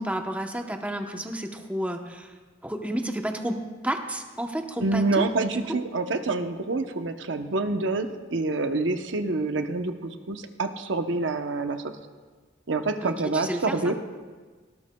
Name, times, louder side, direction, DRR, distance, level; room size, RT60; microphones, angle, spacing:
voice 1, 0.0-2.3 2.6-5.2 5.5-5.6 13.0-13.8, right 1 dB, 5° right, 4 dB, 0.8 m, -31 dB
voice 2, 4.8-11.9 12.7-13.9, right 3 dB, 70° right, 7 dB, 0.8 m, -27 dB
19.0 x 17.5 x 2.3 m, 1.4 s
head